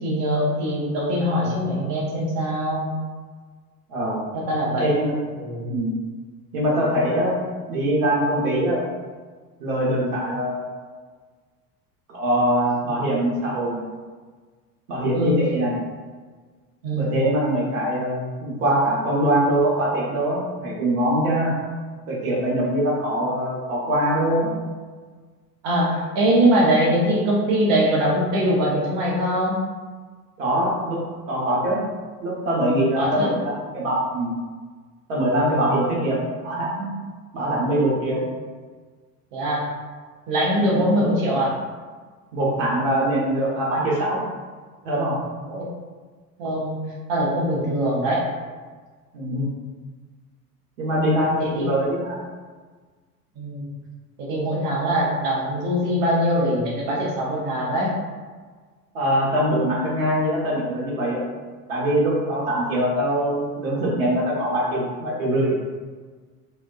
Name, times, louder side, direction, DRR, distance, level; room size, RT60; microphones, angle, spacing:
voice 1, 0.0-2.9 4.3-4.8 5.3-5.6 15.1-15.4 16.8-17.0 25.6-29.6 32.9-33.3 39.3-39.7 40.3-41.6 45.4-45.7 46.4-46.8 47.1-48.2 51.5-51.7 53.4-53.6 54.2-57.9, equal, 20° right, -4 dB, 0.3 m, -22 dB
voice 2, 3.9-4.2 4.8-5.1 5.7-5.9 6.5-7.3 7.7-8.8 9.6-10.6 12.1-13.8 14.9-15.7 17.0-21.5 22.1-24.5 30.4-31.0 31.3-31.8 32.2-34.3 35.1-36.2 36.4-36.9 37.3-38.2 40.7-41.0 42.3-44.2 44.8-45.2 49.1-49.5 50.8-52.2 58.9-61.2 61.7-65.6, right 1 dB, 55° right, -5 dB, 0.8 m, -23 dB
2.6 x 2.1 x 2.3 m, 1.4 s
figure-of-eight pair, 80°, 47 cm